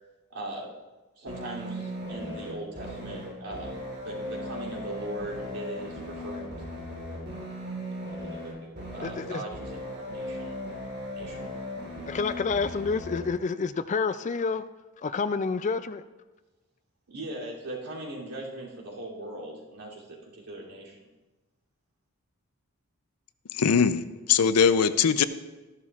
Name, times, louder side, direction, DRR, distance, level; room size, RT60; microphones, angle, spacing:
voice 1, 0.3-0.7 1.2-6.6 8.3-10.6 11.1-11.5 17.1-21.1, right 1 dB, 85° right, -4 dB, 3.0 m, -39 dB
sound 1, 1.3-13.3, equal, 45° right, 3.5 m, -37 dB
voice 2, 9.0-9.4 12.1-14.6 15.0-16.0, left 4 dB, 35° left, 13 dB, 0.3 m, -28 dB
voice 3, 23.6-24.0 24.3-25.2, left 6 dB, 85° left, 13 dB, 0.5 m, -21 dB
13.5 x 11.0 x 2.4 m, 1.1 s
head